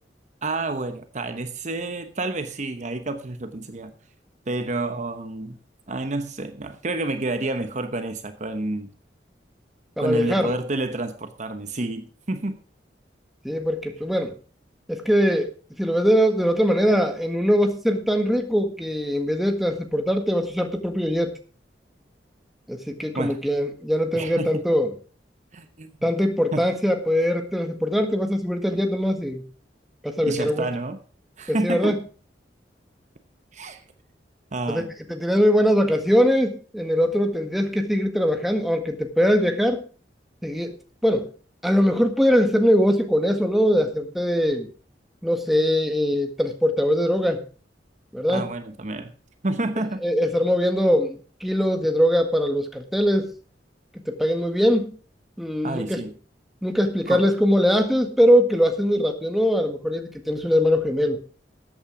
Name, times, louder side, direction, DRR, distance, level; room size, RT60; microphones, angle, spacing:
voice 1, 0.4-3.9 4.5-5.6 5.9-8.9 10.0-12.6 23.1-23.4 24.1-24.5 25.5-25.9 26.5-26.7 30.2-31.0 31.4-32.0 33.5-33.8 34.5-34.9 48.3-49.1 49.4-50.0 55.6-56.1 57.1-57.3, right 2 dB, 40° right, 8 dB, 1.0 m, -29 dB
voice 2, 10.0-10.5 13.4-14.3 14.9-15.5 15.8-21.3 22.7-24.9 26.0-29.4 30.0-30.7 31.5-32.0 34.7-34.8 35.1-39.8 40.4-40.7 41.0-41.3 41.6-44.7 45.2-47.4 48.1-48.5 50.0-53.3 54.1-54.9 55.4-56.0 56.6-61.2, equal, ahead, 4 dB, 1.6 m, -21 dB
13.5 x 8.7 x 4.9 m, 0.38 s
head